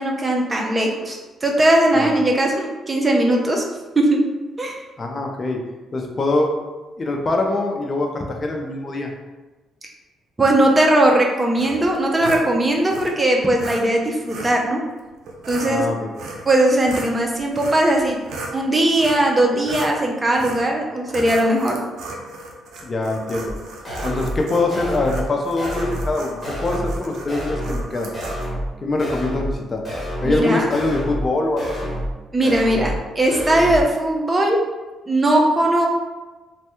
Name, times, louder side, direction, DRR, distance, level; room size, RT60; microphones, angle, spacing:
voice 1, 0.0-3.6 4.0-4.2 4.6-4.8 10.4-14.8 15.5-15.8 16.5-18.2 18.5-21.8 30.2-30.7 32.3-34.6 35.1-35.9, right 1 dB, 20° right, 0 dB, 0.6 m, -19 dB
voice 2, 5.0-5.6 5.9-6.5 7.0-9.1 15.7-16.1 22.8-23.6 24.0-28.1 28.8-29.8 30.2-31.9, left 2 dB, 35° left, 2 dB, 0.5 m, -23 dB
sound 1, 11.6-12.5 12.9-13.1 13.6-13.8 14.3-14.6 15.2-15.7 16.2-16.5 16.8-18.6 19.0-19.3 19.6-20.0 20.3-20.7 21.1-28.5, right 2 dB, 75° right, 0.5 m, -35 dB
sound 2, 23.5-23.6 23.9-24.4 24.7-25.3 25.6-26.1 26.4-27.0 27.3-27.9 28.1-28.7 29.0-29.6 29.9-30.4 30.7-31.3 31.6-32.1 32.4-33.0 33.3-33.8, equal, 10° left, 1.2 m, -28 dB
3.2 x 2.2 x 3.0 m, 1.2 s
cardioid pair, 90°, 0 cm